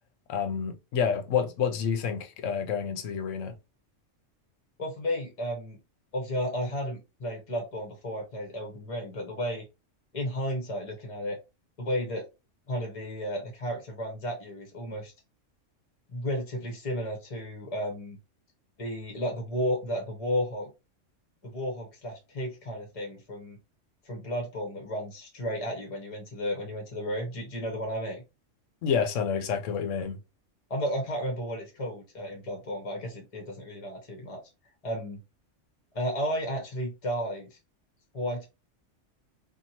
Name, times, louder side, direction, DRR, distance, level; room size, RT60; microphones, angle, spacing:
voice 1, 0.3-3.5 28.8-30.2, left 7 dB, 80° left, 0.9 m, -28 dB
voice 2, 4.8-5.8 6.1-9.6 10.1-11.4 11.8-12.3 12.7-15.1 16.1-18.2 18.8-20.7 21.4-23.6 24.0-28.2 30.7-34.4 34.8-35.2 35.9-37.6 38.1-38.5, equal, 35° left, 0.7 m, -33 dB
2.7 x 2.3 x 2.8 m
omnidirectional pair, 1.3 m